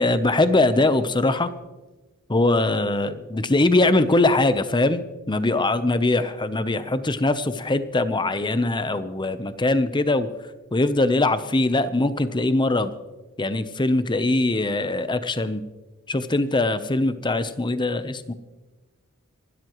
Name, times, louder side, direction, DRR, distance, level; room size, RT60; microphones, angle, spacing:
voice 1, 0.0-1.5 2.3-5.0 5.3-10.3 10.7-12.9 13.4-15.6 16.1-18.3, left 2 dB, 20° left, 12 dB, 0.7 m, -22 dB
26.5 x 12.5 x 3.1 m, 1.2 s
head